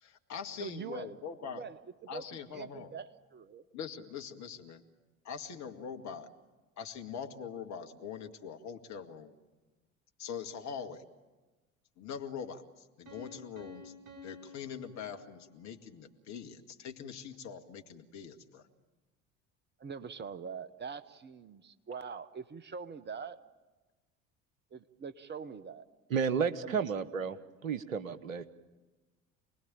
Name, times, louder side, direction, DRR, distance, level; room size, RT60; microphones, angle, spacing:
voice 1, 0.0-1.6 2.1-2.9 3.7-4.8 5.2-6.3 6.8-9.4 10.2-11.0 12.0-13.9 14.2-18.7, left 7 dB, 45° left, 6 dB, 2.0 m, -43 dB
voice 2, 0.6-1.1 1.5-3.6 19.8-23.4 24.7-25.8 26.6-26.8, right 6 dB, 25° right, 12 dB, 1.2 m, -43 dB
Piano, 13.1-15.8, left 3 dB, 50° right, 4.6 m, -52 dB
voice 3, 26.1-27.4 27.6-28.5, right 6 dB, 75° right, 13 dB, 1.2 m, -32 dB
28.0 x 20.5 x 8.9 m, 1.2 s
figure-of-eight pair, 65°, 40 cm